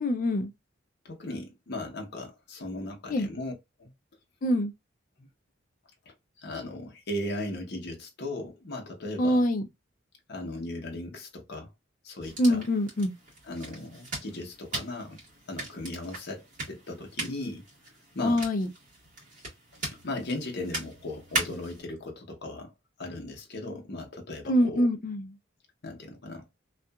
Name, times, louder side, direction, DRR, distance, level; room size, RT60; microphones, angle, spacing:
voice 1, 0.0-0.5 3.1-3.3 4.4-4.7 9.2-9.6 12.4-13.1 18.2-18.7 24.5-25.3, equal, 45° left, 0.4 m, -24 dB
voice 2, 1.0-3.5 3.8-3.9 5.2-5.3 6.4-9.4 10.3-11.7 12.0-12.7 13.4-15.2 15.5-17.6 18.1-18.5 20.0-22.7 23.0-24.9 25.8-26.4, left 1 dB, 60° left, 0.8 m, -37 dB
sound 1, 12.2-21.8, right 2 dB, 40° right, 1.4 m, -39 dB
2.7 x 2.4 x 2.2 m
head